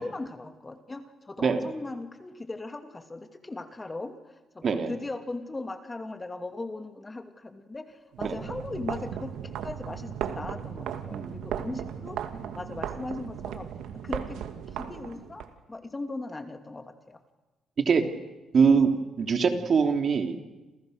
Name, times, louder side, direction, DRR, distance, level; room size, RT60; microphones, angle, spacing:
voice 1, 0.0-12.2 12.5-13.7 14.0-14.4 14.8-17.2, left 2 dB, 20° left, 6 dB, 2.7 m, -38 dB
sound 1, 8.1-15.5, right 9 dB, 85° right, 2.3 m, -36 dB
voice 2, 18.5-18.9 19.2-20.4, right 5 dB, 50° right, 5 dB, 3.1 m, -23 dB
28.5 x 28.0 x 6.6 m, 1.1 s
cardioid pair, 90°, 0 cm